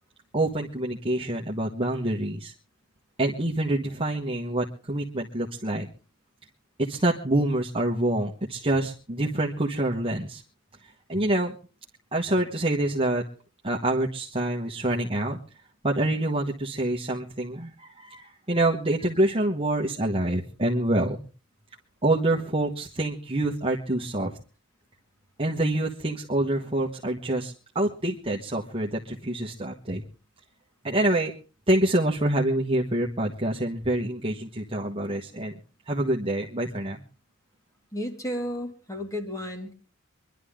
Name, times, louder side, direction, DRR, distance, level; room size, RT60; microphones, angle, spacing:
voice 1, 0.3-2.5 3.2-5.9 6.8-10.4 10.8-11.6 12.1-13.2 13.6-15.4 15.8-21.2 22.0-24.4 25.4-30.0 30.8-31.3 31.7-35.6 35.9-37.0, right 1 dB, 25° right, -1 dB, 1.4 m, -26 dB
voice 2, 37.9-39.7, equal, 15° left, 4 dB, 2.4 m, -33 dB
25.5 x 11.5 x 3.7 m, 0.36 s
head